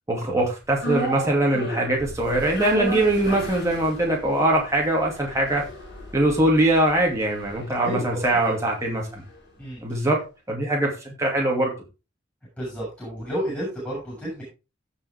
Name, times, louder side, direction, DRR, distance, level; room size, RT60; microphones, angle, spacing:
voice 1, 0.1-5.6 6.1-9.2 9.8-10.2 10.5-11.7, right 1 dB, 15° right, -2 dB, 2.6 m, -22 dB
sound 1, 0.8-9.1 9.4-9.5, equal, 55° left, 5.5 m, -34 dB
voice 2, 12.6-14.4, equal, 5° left, -6 dB, 6.2 m, -31 dB
16.5 x 5.5 x 3.5 m, 0.29 s
head